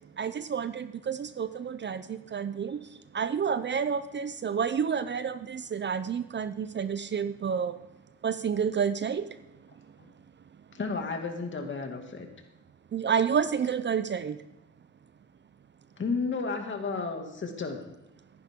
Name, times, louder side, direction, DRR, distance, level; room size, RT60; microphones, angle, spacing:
voice 1, 0.2-7.8 8.2-9.4 12.9-14.4, right 7 dB, 35° right, 13 dB, 0.6 m, -30 dB
voice 2, 10.7-12.3 16.0-17.8, left 4 dB, 40° left, 4 dB, 2.3 m, -32 dB
14.5 x 11.0 x 3.7 m, 0.97 s
cardioid pair, 90°, 30 cm